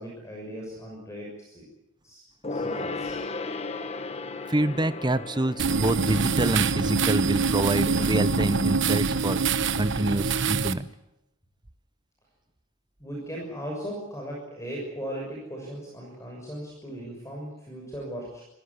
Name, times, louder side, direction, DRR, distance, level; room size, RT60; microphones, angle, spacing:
voice 1, 0.0-1.7 2.0-2.2 2.5-3.2 13.0-18.4, equal, 15° left, -2 dB, 6.5 m, -37 dB
Gong, 2.4-8.3 8.6-8.7, left 3 dB, 30° left, 1.2 m, -36 dB
voice 2, 4.5-9.4 9.8-10.9, right 1 dB, 20° right, 14 dB, 0.8 m, -26 dB
sound 1, 5.6-10.7, right 4 dB, 60° right, 1.0 m, -25 dB
26.0 x 16.5 x 9.8 m, 0.91 s
head